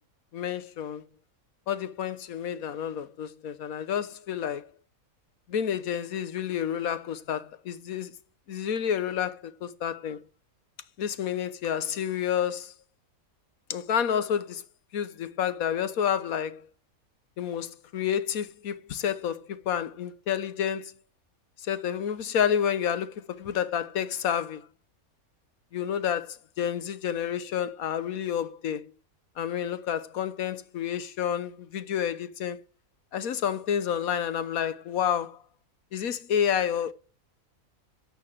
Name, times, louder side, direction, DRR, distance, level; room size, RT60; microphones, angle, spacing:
voice 1, 0.3-1.0 1.7-4.7 5.5-8.1 8.5-10.2 11.0-12.7 13.7-14.6 14.9-16.7 17.4-20.9 21.6-24.7 25.7-28.9 29.4-32.6 33.1-35.4 35.9-36.9, left 9 dB, 75° left, 1.4 m, -29 dB
9.9 x 8.8 x 7.6 m
omnidirectional pair, 1.5 m